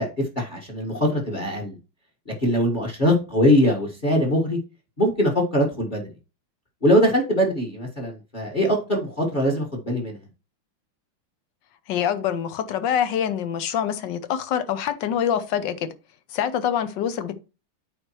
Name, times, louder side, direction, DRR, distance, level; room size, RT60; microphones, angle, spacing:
voice 1, 0.0-1.8 2.3-4.6 5.0-6.1 6.8-10.2, equal, 25° left, 1.5 m, -22 dB
voice 2, 11.9-15.9 16.3-17.3, left 9 dB, 70° left, 1.2 m, -25 dB
8.6 x 5.0 x 3.0 m
omnidirectional pair, 2.3 m